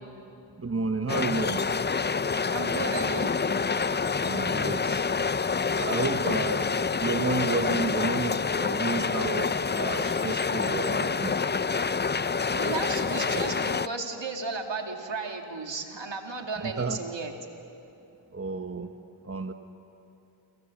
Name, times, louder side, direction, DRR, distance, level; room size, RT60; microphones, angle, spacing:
voice 1, 0.6-1.6 4.2-5.0 5.7-11.3 16.6-17.0 18.3-18.9 19.3-19.5, right 3 dB, 30° right, 7 dB, 1.2 m, -31 dB
sound 1, 1.1-13.9, left 5 dB, 25° left, 0.5 m, -27 dB
voice 2, 2.5-3.3 6.3-6.5 12.5-17.3, right 4 dB, 70° right, 3 dB, 2.5 m, -34 dB
29.0 x 23.0 x 7.2 m, 2.9 s
cardioid pair, 50°, 46 cm